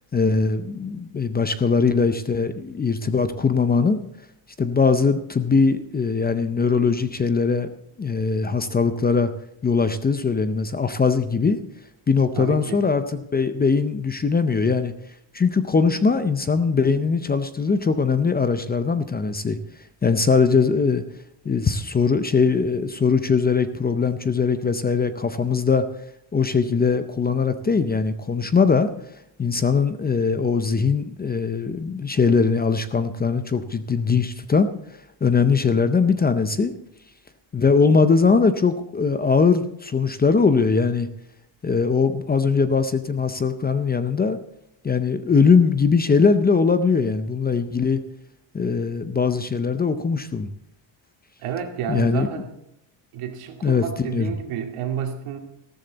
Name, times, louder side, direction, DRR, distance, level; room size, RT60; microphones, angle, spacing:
voice 1, 0.1-4.0 4.6-7.7 8.0-9.3 9.6-11.6 12.1-14.9 15.3-19.6 20.0-21.0 21.5-25.8 26.3-28.9 29.4-34.7 35.2-36.7 37.5-41.1 41.6-44.4 44.8-48.0 48.5-50.5 51.9-52.3 53.6-54.3, left 5 dB, 20° left, 11 dB, 0.5 m, -21 dB
voice 2, 12.4-12.8 51.4-52.5 53.1-55.4, right 8 dB, 85° right, 4 dB, 2.3 m, -30 dB
14.0 x 13.5 x 4.0 m, 0.81 s
cardioid pair, 160°, 50 cm